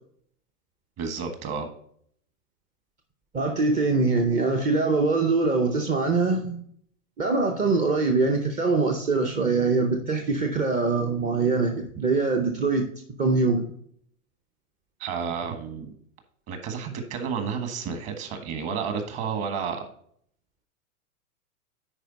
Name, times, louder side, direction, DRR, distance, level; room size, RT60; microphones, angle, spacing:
voice 1, 1.0-1.7 15.0-15.9 16.5-19.8, right 6 dB, 35° right, 7 dB, 1.6 m, -31 dB
voice 2, 3.3-6.6 7.2-12.9 13.2-13.7, right 3 dB, 15° right, 3 dB, 0.6 m, -23 dB
9.9 x 4.4 x 4.0 m, 0.64 s
hypercardioid pair, 130°, 45 cm